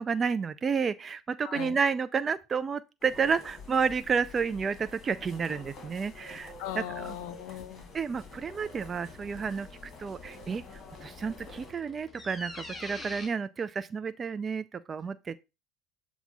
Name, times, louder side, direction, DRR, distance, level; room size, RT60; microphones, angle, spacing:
voice 1, 0.0-7.1 7.9-9.7 10.0-10.6 11.0-15.4, right 6 dB, 30° right, 0.4 m, -31 dB
voice 2, 1.4-1.8 6.6-7.9, left 11 dB, 65° left, 0.5 m, -38 dB
sound 1, 3.0-11.7, left 4 dB, 40° left, 1.8 m, -49 dB
sound 2, 7.9-13.3, left 2 dB, 5° left, 3.9 m, -47 dB
7.1 x 2.4 x 5.5 m
hypercardioid pair, 70°, 0 cm